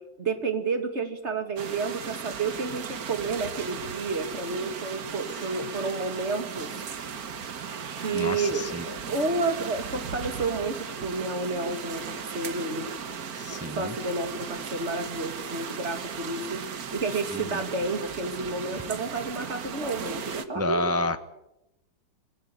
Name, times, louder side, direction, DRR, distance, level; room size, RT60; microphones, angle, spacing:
voice 1, 0.2-6.7 8.0-12.9 13.8-16.6 16.9-21.2, right 3 dB, 35° right, 7 dB, 2.6 m, -30 dB
sound 1, 1.6-20.4, right 7 dB, 55° right, 1.7 m, -37 dB
voice 2, 8.1-8.8 13.4-13.9 17.3-17.6 20.5-21.2, left 2 dB, 15° right, 10 dB, 0.6 m, -30 dB
23.5 x 17.5 x 10.0 m, 0.89 s
omnidirectional pair, 2.0 m